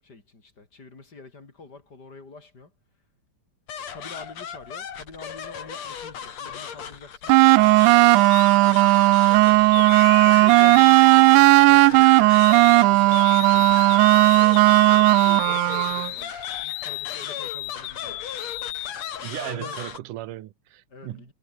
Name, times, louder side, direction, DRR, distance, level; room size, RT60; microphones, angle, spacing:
voice 1, 0.0-2.7 3.9-9.7 10.2-12.4 12.8-18.3 18.7-18.8 19.2-19.8 20.9-21.3, left 3 dB, 30° left, 4.1 m, -46 dB
sound 1, 3.7-20.0, left 7 dB, 50° left, 3.3 m, -37 dB
sound 2, 7.3-16.1, right 21 dB, 90° right, 1.7 m, -15 dB
sound 3, 8.3-8.5 9.7-12.8 13.1-19.2, left 17 dB, 80° left, 1.6 m, -35 dB
voice 2, 19.2-21.3, right 14 dB, 70° right, 2.6 m, -36 dB
omnidirectional pair, 4.1 m